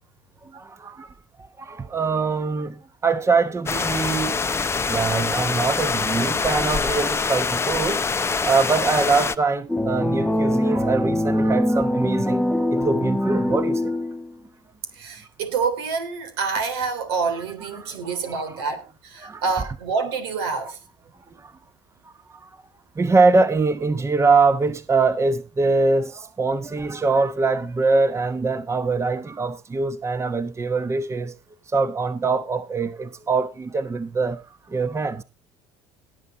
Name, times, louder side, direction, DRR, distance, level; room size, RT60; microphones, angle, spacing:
voice 1, 0.5-1.1 1.6-4.4 4.9-8.0 8.4-13.9 17.7-18.6 19.2-19.4 20.6-20.7 21.4-21.5 22.4-22.5 23.0-31.3 31.7-34.4 34.7-35.2, right 4 dB, 20° right, 1.1 m, -23 dB
sound 1, 3.7-9.4, left 4 dB, 20° left, 0.8 m, -24 dB
sound 2, 9.7-14.3, left 1 dB, 5° left, 1.3 m, -23 dB
voice 2, 14.9-20.8, right 5 dB, 85° right, 3.2 m, -27 dB
18.0 x 8.1 x 4.1 m
hypercardioid pair, 80°, 12 cm